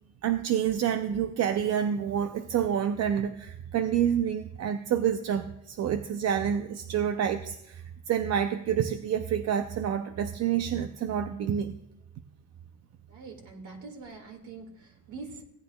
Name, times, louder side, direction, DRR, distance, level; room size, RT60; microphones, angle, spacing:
voice 1, 0.2-11.7, right 9 dB, 60° right, 8 dB, 0.6 m, -28 dB
voice 2, 13.1-15.4, right 3 dB, 75° right, 2 dB, 2.1 m, -44 dB
17.0 x 9.2 x 2.3 m, 0.84 s
cardioid pair, 90°, 30 cm